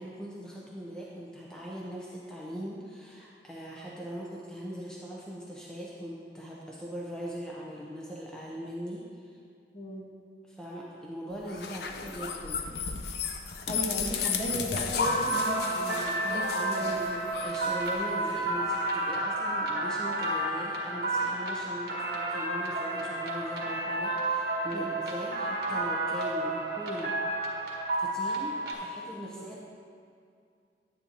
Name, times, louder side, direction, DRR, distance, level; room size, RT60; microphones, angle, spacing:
voice 1, 0.0-9.3 10.4-12.7 17.4-27.2 28.0-29.6, equal, 5° left, -5 dB, 0.8 m, -40 dB
sound 1, 11.5-18.4, left 5 dB, 65° left, 0.6 m, -33 dB
voice 2, 13.7-17.1 24.7-24.9 29.3-29.5, right 1 dB, 35° left, -3 dB, 1.4 m, -36 dB
sound 2, 15.0-28.7, right 2 dB, 60° right, 1.5 m, -31 dB
9.7 x 9.7 x 2.9 m, 2.4 s
head